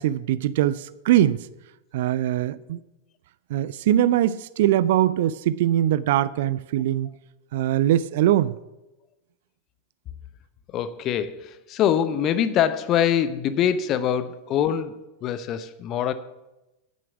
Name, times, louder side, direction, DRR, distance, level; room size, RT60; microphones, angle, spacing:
voice 1, 0.0-1.5 1.9-2.8 3.5-7.1 7.5-8.6, right 12 dB, 55° right, 0.4 m, -22 dB
voice 2, 10.7-16.1, left 9 dB, 35° left, 0.8 m, -24 dB
9.5 x 9.1 x 6.0 m
figure-of-eight pair, 90°, 0 cm